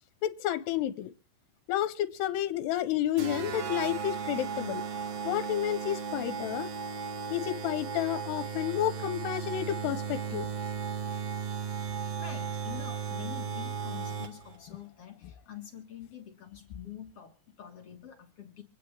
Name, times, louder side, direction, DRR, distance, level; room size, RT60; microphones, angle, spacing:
voice 1, 0.2-1.1 1.7-4.8 5.2-6.7 7.3-10.5, left 12 dB, 75° left, 11 dB, 2.8 m, -31 dB
sound 1, 3.2-14.6, right 6 dB, 75° right, 1.5 m, -35 dB
voice 2, 12.2-18.6, left 10 dB, 60° left, 3 dB, 1.5 m, -46 dB
25.5 x 9.5 x 3.3 m, 0.33 s
omnidirectional pair, 5.0 m